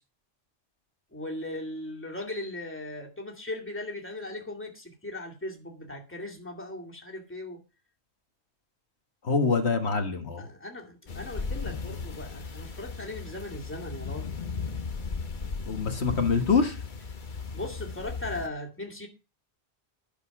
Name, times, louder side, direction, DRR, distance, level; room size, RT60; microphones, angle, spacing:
voice 1, 1.1-7.6 10.4-14.3 17.5-19.1, left 1 dB, 10° left, 0 dB, 2.3 m, -38 dB
voice 2, 9.2-10.5 15.7-16.8, left 5 dB, 75° left, 5 dB, 1.8 m, -25 dB
sound 1, 11.1-18.5, left 4 dB, 45° left, 1.2 m, -36 dB
10.5 x 6.8 x 5.9 m, 0.32 s
omnidirectional pair, 1.1 m